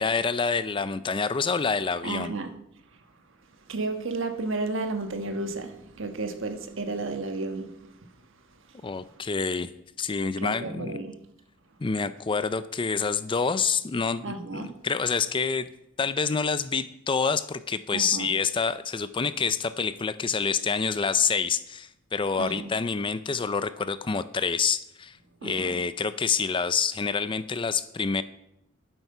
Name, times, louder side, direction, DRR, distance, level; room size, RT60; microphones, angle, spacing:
voice 1, 0.0-2.3 8.8-9.7 10.0-10.9 11.8-15.7 16.0-25.2 25.4-28.2, left 5 dB, 25° left, 0.4 m, -27 dB
voice 2, 2.0-2.6 3.7-8.1 10.4-11.2 14.2-14.8 17.9-18.3 22.4-22.7 25.4-25.8, right 3 dB, 65° right, 1.3 m, -32 dB
11.5 x 9.1 x 5.5 m
head